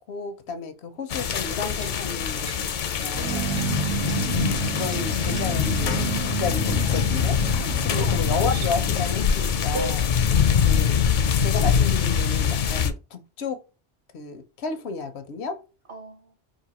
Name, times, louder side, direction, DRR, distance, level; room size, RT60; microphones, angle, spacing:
voice 1, 0.1-2.7 3.0-3.4 4.5-10.0 10.6-11.0 11.4-13.6 14.1-15.6, left 4 dB, 85° left, 1.0 m, -32 dB
sound 1, 1.1-12.9, left 7 dB, 60° left, 0.6 m, -23 dB
sound 2, 1.8-2.0 2.5-2.7 3.0-3.2 3.6-3.8 4.1-4.2 4.6-5.0 5.4-5.5 5.9-6.1 6.8-6.9 8.6-8.8, right 1 dB, 5° right, 0.3 m, -45 dB
sound 3, 3.1-10.9, right 6 dB, 90° right, 1.4 m, -32 dB
voice 2, 3.9-4.6 7.9-8.2 8.5-8.9 9.7-10.2 15.9-16.4, right 2 dB, 50° right, 1.1 m, -36 dB
4.8 x 2.6 x 2.8 m
omnidirectional pair, 1.1 m